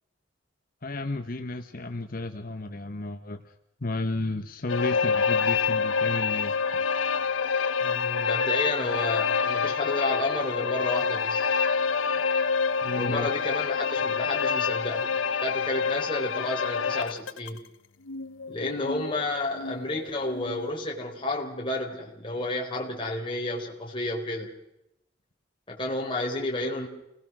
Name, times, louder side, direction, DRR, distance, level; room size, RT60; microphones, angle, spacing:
voice 1, 0.8-3.4 3.8-6.6 12.8-13.3, left 2 dB, 50° left, 7 dB, 1.1 m, -32 dB
sound 1, 4.7-17.6 18.1-20.7, left 5 dB, 85° left, 0.8 m, -27 dB
voice 2, 7.8-11.5 13.0-17.6 18.5-24.5 25.7-26.9, left 2 dB, 25° left, -2 dB, 4.0 m, -31 dB
29.5 x 20.0 x 6.2 m, 0.84 s
head